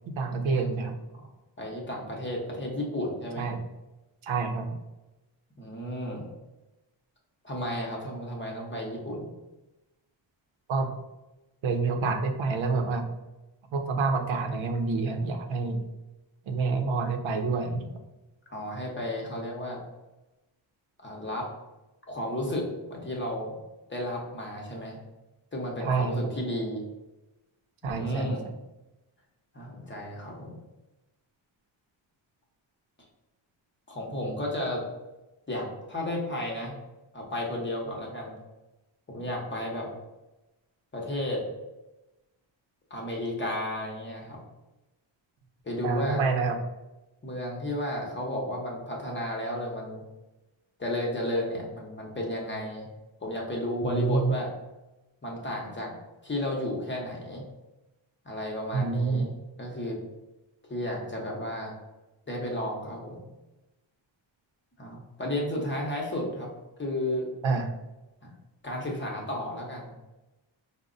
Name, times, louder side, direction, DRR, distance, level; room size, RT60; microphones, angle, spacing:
voice 1, 0.1-0.9 3.4-3.6 4.2-4.7 10.7-10.9 11.6-13.1 13.7-15.8 16.5-18.0 25.8-26.2 27.8-28.3 45.8-46.6 53.8-54.4 58.7-59.3 67.4-67.7, right 4 dB, 80° right, 5 dB, 0.7 m, -27 dB
voice 2, 1.6-3.5 5.6-6.3 7.4-9.3 18.5-19.8 21.0-21.5 22.1-23.6 23.9-25.0 25.5-26.8 27.8-28.5 29.5-30.6 33.9-34.8 35.5-36.8 37.1-38.3 39.1-39.9 40.9-41.4 42.9-44.4 45.6-46.2 47.2-50.0 50.8-52.9 53.2-54.5 55.2-55.9 56.2-57.4 58.2-59.3 59.6-60.0 60.7-61.7 62.3-63.2 64.8-66.5 66.8-67.3 68.2-68.3 68.6-70.0, left 1 dB, 25° left, -1 dB, 0.8 m, -33 dB
5.1 x 2.1 x 3.8 m, 1.0 s
wide cardioid pair, 155°, 47 cm